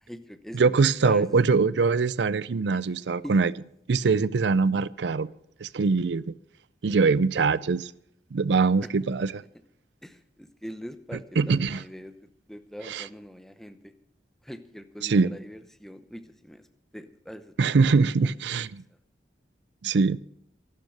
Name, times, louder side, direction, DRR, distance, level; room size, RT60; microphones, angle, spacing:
voice 1, 0.0-1.3 3.2-3.4 4.0-4.3 10.0-12.2 12.5-13.9 14.4-16.6 16.9-17.8 18.2-18.6, equal, ahead, 0.8 m, -43 dB
voice 2, 0.5-3.5 3.9-5.3 5.6-6.3 6.8-7.9 8.3-9.4 11.4-11.8 12.9-13.0 15.0-15.3 17.6-18.8 19.8-20.2, right 4 dB, 80° right, 0.5 m, -23 dB
12.0 x 12.0 x 6.6 m
head